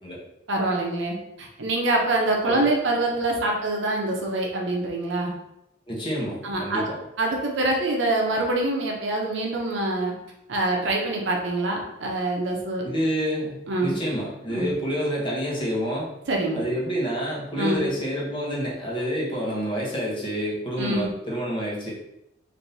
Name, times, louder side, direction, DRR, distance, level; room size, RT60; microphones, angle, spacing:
voice 1, 0.5-5.3 6.4-6.8 7.2-10.1 10.5-12.8 13.7-14.0 14.5-14.7 16.3-16.6 17.6-17.9 20.8-21.1, right 2 dB, 65° right, 0 dB, 0.6 m, -25 dB
voice 2, 5.9-7.0 12.8-16.1 16.5-21.9, equal, 25° left, -5 dB, 0.9 m, -28 dB
3.4 x 2.6 x 2.7 m, 0.85 s
head